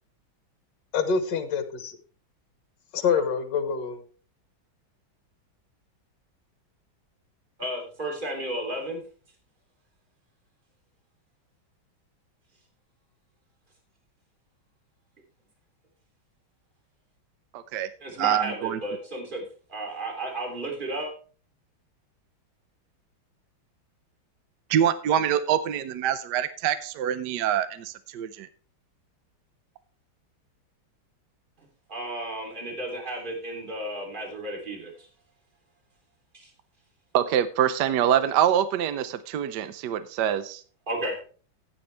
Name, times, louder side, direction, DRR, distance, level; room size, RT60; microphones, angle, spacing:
voice 1, 0.9-2.0 2.9-4.0, left 6 dB, 60° left, 9 dB, 1.8 m, -26 dB
voice 2, 7.6-9.0 18.0-19.4 19.7-21.1 31.9-35.1 36.3-36.5 40.9-41.2, right 1 dB, 25° right, 0 dB, 3.2 m, -33 dB
voice 3, 17.5-17.9 18.2-18.8 24.7-28.5 37.1-40.6, right 10 dB, 65° right, 13 dB, 1.2 m, -25 dB
14.5 x 8.6 x 3.3 m, 0.40 s
omnidirectional pair, 2.2 m